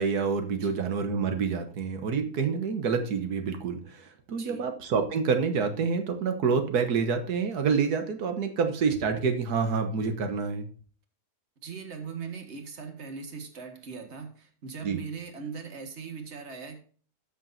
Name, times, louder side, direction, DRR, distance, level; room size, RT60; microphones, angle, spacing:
voice 1, 0.0-10.7 14.8-15.0, right 5 dB, 85° right, 7 dB, 1.6 m, -27 dB
voice 2, 11.6-16.8, right 5 dB, 45° right, 5 dB, 1.8 m, -39 dB
13.5 x 7.0 x 2.6 m, 0.42 s
omnidirectional pair, 1.6 m